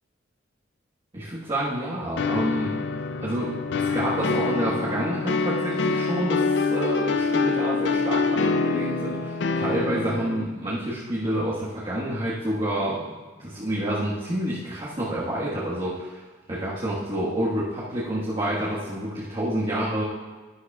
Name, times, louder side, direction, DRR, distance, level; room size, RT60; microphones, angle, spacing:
voice 1, 1.1-2.8 3.2-16.2 16.5-20.0, right 1 dB, 30° right, -8 dB, 1.5 m, -28 dB
sound 1, 2.2-10.4, left 4 dB, 65° left, 0.5 m, -25 dB
12.0 x 11.5 x 2.4 m, 1.3 s
head